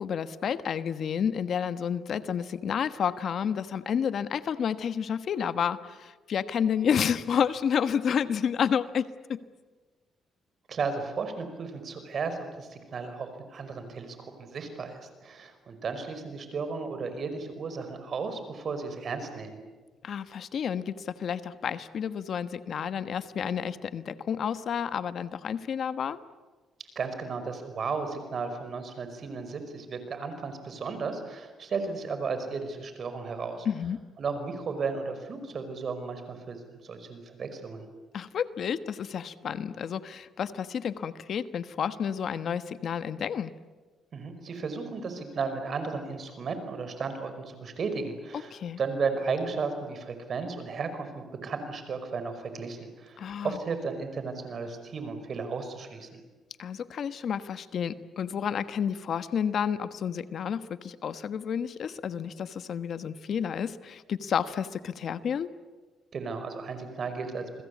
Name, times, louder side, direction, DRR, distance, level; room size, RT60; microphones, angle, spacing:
voice 1, 0.0-9.4 20.0-26.2 33.6-34.0 38.1-43.5 48.5-48.8 53.2-53.6 56.6-65.5, left 7 dB, 60° left, 12 dB, 1.2 m, -30 dB
voice 2, 10.7-19.6 27.0-33.7 34.2-37.9 44.1-56.2 66.1-67.6, right 4 dB, 50° right, 9 dB, 5.3 m, -34 dB
28.5 x 21.5 x 8.5 m, 1.3 s
cardioid pair, 90°, 0 cm